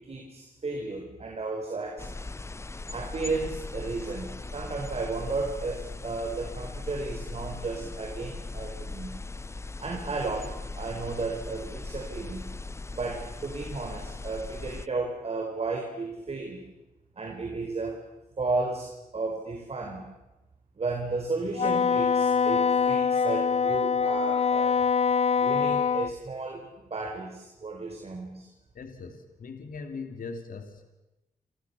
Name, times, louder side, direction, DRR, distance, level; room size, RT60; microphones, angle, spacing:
voice 1, 0.0-2.1 2.9-9.1 9.8-12.5 12.9-16.6 17.2-18.0 18.4-20.1 20.8-24.8 25.4-28.5, right 3 dB, 45° right, 3 dB, 4.5 m, -33 dB
sound 1, 2.0-14.9, left 3 dB, 20° left, 0.8 m, -39 dB
Wind instrument woodwind instrument, 21.6-26.1, left 6 dB, 45° left, 0.9 m, -24 dB
voice 2, 28.7-30.8, left 4 dB, 70° left, 6 dB, 2.8 m, -40 dB
28.5 x 27.0 x 7.0 m, 1.0 s
wide cardioid pair, 105°, 15 cm